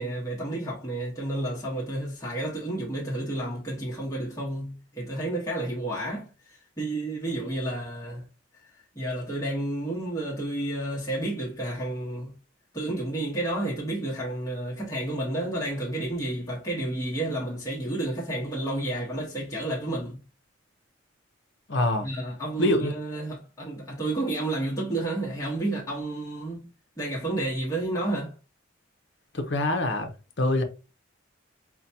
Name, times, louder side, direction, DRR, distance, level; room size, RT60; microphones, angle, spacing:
voice 1, 0.0-8.2 8.9-12.3 12.7-20.2 22.0-28.3, right 1 dB, 15° left, 1.1 m, -31 dB
voice 2, 21.7-22.1 22.6-22.9 29.3-30.1 30.4-30.6, left 1 dB, 60° left, 0.7 m, -24 dB
5.6 x 2.2 x 2.7 m
head